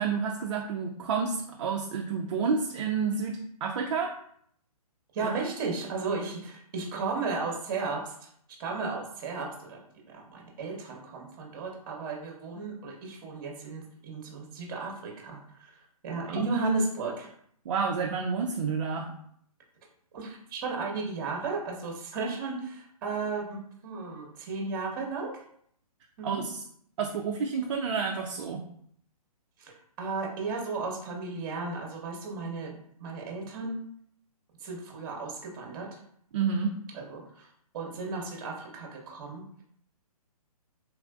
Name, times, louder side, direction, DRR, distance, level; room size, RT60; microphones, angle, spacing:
voice 1, 0.0-4.1 5.2-5.4 16.2-16.5 17.7-19.1 26.2-26.6 27.0-28.6 36.3-36.8, right 5 dB, 50° right, 2 dB, 0.4 m, -30 dB
voice 2, 5.1-8.3 8.6-9.8 10.1-15.8 16.0-17.3 20.1-25.3 26.2-26.4 29.6-29.7 30.0-33.8 34.6-36.0 36.9-37.5 37.7-39.6, right 4 dB, 35° right, 0 dB, 0.9 m, -34 dB
3.2 x 2.4 x 2.3 m, 0.67 s
hypercardioid pair, 145°, 20 cm